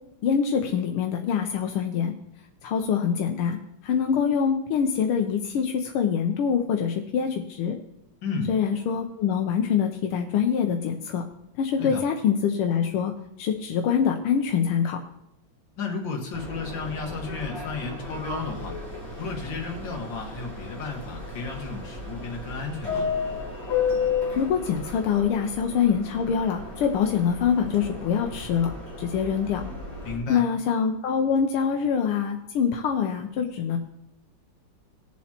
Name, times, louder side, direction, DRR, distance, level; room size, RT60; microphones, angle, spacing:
voice 1, 0.2-2.1 2.6-3.6 3.8-7.8 8.5-11.2 11.6-13.1 13.4-15.0 24.3-29.6 30.3-33.8, left 7 dB, 85° left, 3 dB, 1.7 m, -24 dB
voice 2, 8.2-8.5 11.8-12.0 15.8-18.8 19.2-23.1 30.0-30.4, left 4 dB, 60° left, 1 dB, 2.3 m, -33 dB
Subway metro underground, 16.3-30.1, left 5 dB, 10° right, 3.1 m, -33 dB
19.5 x 7.3 x 2.9 m, 0.78 s
omnidirectional pair, 2.4 m